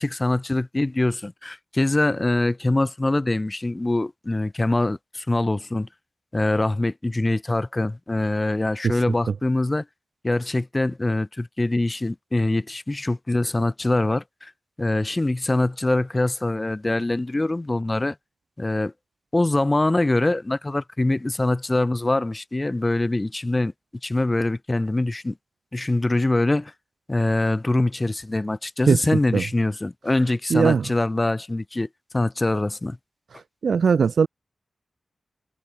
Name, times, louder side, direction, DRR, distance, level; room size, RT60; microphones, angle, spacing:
voice 1, 0.0-5.9 6.3-9.8 10.2-14.5 14.8-18.1 18.6-18.9 19.3-23.7 24.0-25.3 25.7-26.7 27.1-33.0, left 2 dB, 20° left, 6.9 m, -23 dB
voice 2, 30.5-30.8 33.6-34.3, right 6 dB, 75° right, 4.8 m, -18 dB
wide cardioid pair, 115°, 0 cm